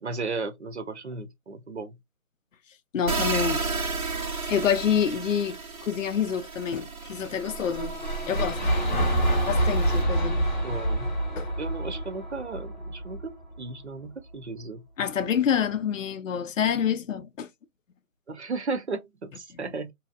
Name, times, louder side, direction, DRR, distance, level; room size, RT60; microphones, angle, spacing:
voice 1, 0.0-1.9 9.2-9.4 10.6-11.1 11.6-14.8 18.3-19.9, right 3 dB, 55° right, 0.5 m, -35 dB
voice 2, 2.9-3.6 4.5-5.6 5.8-7.9 8.3-8.6 9.5-10.4 11.4-11.5 15.0-17.5, left 8 dB, 65° left, 0.5 m, -27 dB
sound 1, 3.0-10.0, right 4 dB, 70° right, 1.0 m, -33 dB
sound 2, 7.4-13.6, right 1 dB, 35° left, 0.8 m, -27 dB
2.7 x 2.3 x 2.4 m
figure-of-eight pair, 165°, 42 cm